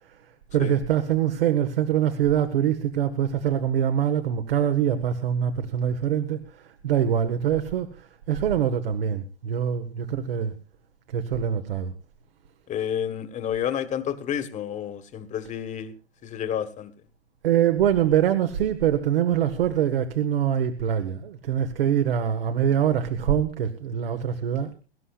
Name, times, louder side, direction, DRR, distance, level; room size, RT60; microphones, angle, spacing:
voice 1, 0.5-10.5 11.1-11.9 17.4-24.7, right 9 dB, 60° right, 1.6 m, -24 dB
voice 2, 12.7-15.9 16.2-16.9, left 9 dB, 25° left, 1.7 m, -30 dB
23.5 x 12.5 x 2.5 m
figure-of-eight pair, 110°, 31 cm